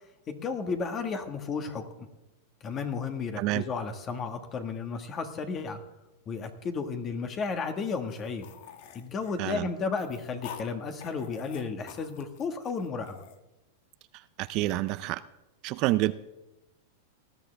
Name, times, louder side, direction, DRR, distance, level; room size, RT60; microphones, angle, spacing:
voice 1, 0.3-2.1 2.6-5.8 6.3-8.5 8.9-13.2, left 5 dB, 30° left, 7 dB, 1.6 m, -33 dB
sound 1, 8.1-10.7 11.0-13.4, left 8 dB, 60° left, 1.3 m, -47 dB
voice 2, 14.1-15.2 15.6-16.1, right 18 dB, 45° right, 15 dB, 0.5 m, -28 dB
19.0 x 13.0 x 3.4 m, 0.97 s
supercardioid pair, 135°, 0 cm